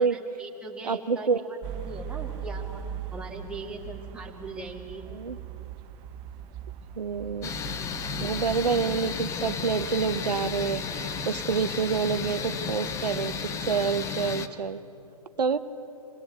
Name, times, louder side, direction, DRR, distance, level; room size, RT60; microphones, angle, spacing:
voice 1, 0.0-1.6 1.8-5.1, right 2 dB, 5° right, -1 dB, 2.1 m, -40 dB
voice 2, 0.8-1.4 5.1-5.4 7.0-7.5 8.2-14.8 15.4-15.6, right 5 dB, 80° right, 10 dB, 0.9 m, -27 dB
sound 1, 1.6-13.6, right 9 dB, 25° right, 0.8 m, -41 dB
sound 2, 7.4-14.5, left 6 dB, 15° left, 0.8 m, -33 dB
24.5 x 18.0 x 8.1 m, 2.9 s
hypercardioid pair, 130°, 20 cm